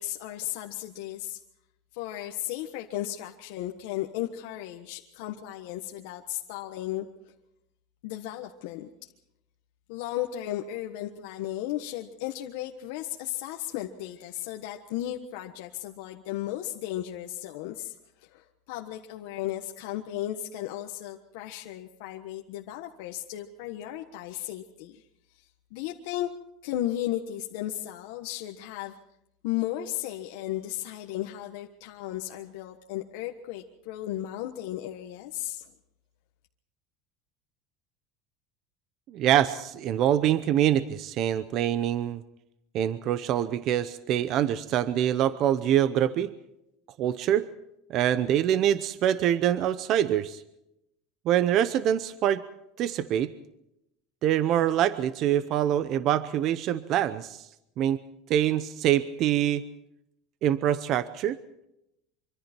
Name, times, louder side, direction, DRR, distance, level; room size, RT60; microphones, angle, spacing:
voice 1, 0.0-1.4 1.9-7.1 8.0-8.9 9.9-17.9 18.2-25.0 25.7-26.3 26.6-28.9 29.4-35.6, left 13 dB, 65° left, 3 dB, 1.3 m, -35 dB
voice 2, 39.1-42.2 42.7-46.3 47.0-47.5 47.9-50.4 51.3-52.4 52.8-53.3 54.2-57.5 57.8-58.0 58.3-59.6 60.4-61.4, right 11 dB, 35° right, 14 dB, 0.7 m, -25 dB
25.0 x 25.0 x 4.5 m, 0.83 s
cardioid pair, 170°, 0 cm